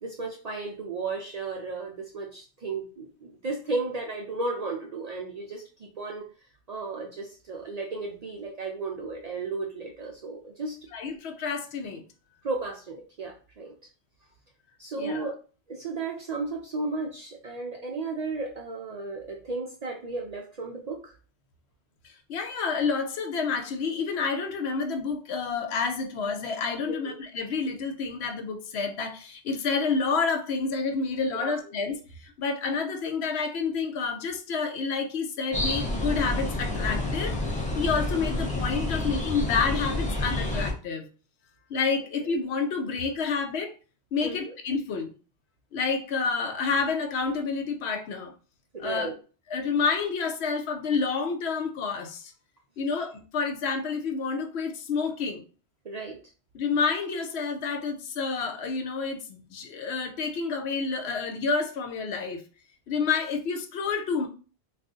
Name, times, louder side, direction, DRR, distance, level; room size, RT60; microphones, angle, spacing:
voice 1, 0.0-6.2 6.7-10.8 12.4-13.7 14.8-15.4 15.7-21.1 26.9-27.2 31.3-31.6 44.2-44.5 48.7-49.1 55.8-56.2, right 3 dB, 55° right, 0 dB, 0.4 m, -34 dB
voice 2, 10.9-12.0 15.0-15.2 22.0-41.1 41.7-43.7 44.1-45.1 45.7-48.3 48.8-49.1 49.5-52.3 52.8-55.4 56.5-62.4 62.9-64.3, left 5 dB, 75° left, 5 dB, 0.8 m, -29 dB
sound 1, 35.5-40.7, left 1 dB, 10° left, 0.4 m, -29 dB
2.4 x 2.4 x 3.6 m, 0.37 s
omnidirectional pair, 1.1 m